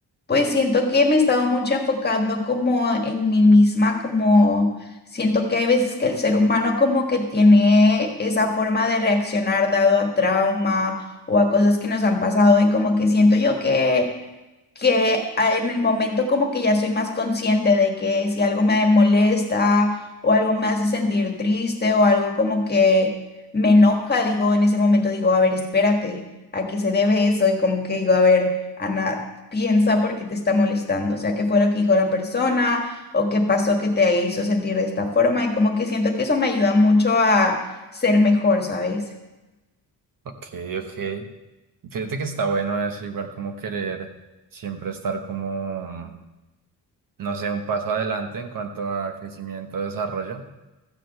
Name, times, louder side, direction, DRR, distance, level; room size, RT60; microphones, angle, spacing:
voice 1, 0.3-4.7 5.1-14.1 14.7-23.1 23.5-26.2 26.5-29.3 29.5-37.7 37.9-39.1, left 3 dB, 25° left, 2 dB, 1.5 m, -19 dB
voice 2, 40.2-41.3 41.8-44.1 44.5-46.2 47.2-50.5, right 5 dB, 55° right, 5 dB, 1.2 m, -29 dB
14.0 x 5.1 x 7.8 m, 1.1 s
wide cardioid pair, 155°, 40 cm